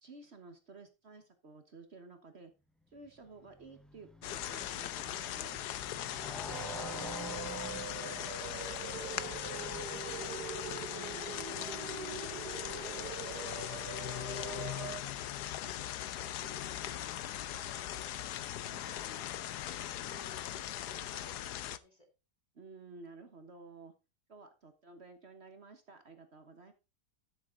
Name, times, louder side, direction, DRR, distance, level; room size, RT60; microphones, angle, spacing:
voice 1, 0.0-2.5 2.9-5.6 12.3-12.8 18.6-18.9 22.5-23.9 24.3-26.7, right 3 dB, 40° right, 7 dB, 1.4 m, -53 dB
Motorcycle, 3.0-11.1, equal, ahead, 0.6 m, -50 dB
sound 1, 4.2-21.8, left 12 dB, 80° left, 1.2 m, -40 dB
sound 2, 6.5-15.0, right 7 dB, 80° right, 1.5 m, -43 dB
voice 2, 6.6-12.0 12.5-18.3 18.8-22.1, left 1 dB, 25° left, 5 dB, 2.0 m, -58 dB
11.5 x 7.1 x 3.8 m, 0.28 s
omnidirectional pair, 1.8 m